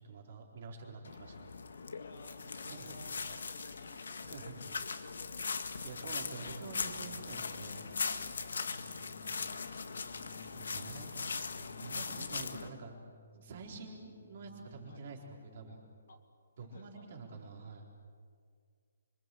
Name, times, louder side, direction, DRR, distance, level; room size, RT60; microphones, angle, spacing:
voice 1, 0.0-1.5 2.6-3.4 4.2-4.6 5.8-7.9 10.4-11.1 11.8-13.0 13.3-15.8 16.6-17.9, right 4 dB, 35° right, 0 dB, 4.1 m, -48 dB
sound 1, 1.0-12.7, left 4 dB, 70° left, 1.8 m, -40 dB
voice 2, 2.0-5.5 8.5-8.9 10.2-11.4 12.1-12.8 14.9-15.0 16.1-16.2 16.6-17.1, left 4 dB, 45° left, 4 dB, 2.8 m, -58 dB
Organ, 5.9-16.2, left 2 dB, 15° left, 1.0 m, -62 dB
25.5 x 25.5 x 7.8 m, 2.1 s
hypercardioid pair, 180°, 0 cm